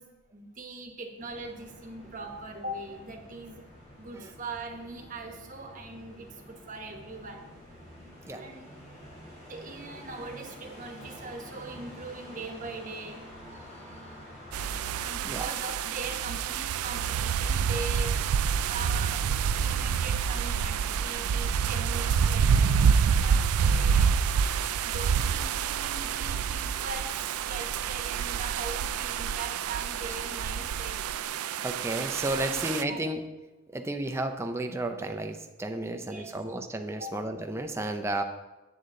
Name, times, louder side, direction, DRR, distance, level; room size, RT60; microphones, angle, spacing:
voice 1, 0.0-3.7 4.0-7.5 8.2-9.2 9.5-13.3 14.3-14.4 14.9-18.2 18.7-19.3 19.6-24.2 24.8-31.0 32.4-32.6 32.9-33.1 35.9-36.3 37.0-37.1, right 3 dB, 35° right, 3 dB, 1.0 m, -41 dB
sound 1, 1.2-15.1, equal, 30° left, 2.9 m, -48 dB
voice 2, 13.6-14.2 15.2-15.5 31.6-33.2 33.7-38.2, right 1 dB, 10° right, 5 dB, 0.5 m, -33 dB
sound 2, 14.5-32.8, right 7 dB, 80° right, 0.4 m, -27 dB
8.3 x 8.0 x 3.7 m, 1.1 s
head